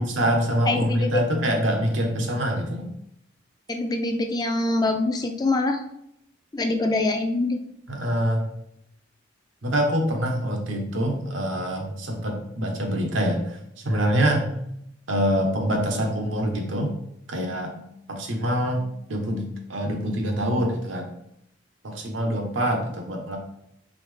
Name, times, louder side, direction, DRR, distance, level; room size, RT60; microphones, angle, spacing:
voice 1, 0.0-2.9 7.9-8.5 9.6-13.6 13.8-14.5 15.1-16.9 17.3-21.1 21.8-23.4, equal, 80° right, 2 dB, 0.9 m, -25 dB
voice 2, 0.7-1.2 3.7-5.8 6.5-7.6, left 2 dB, 20° left, 5 dB, 0.3 m, -24 dB
4.2 x 3.6 x 3.2 m, 0.77 s
head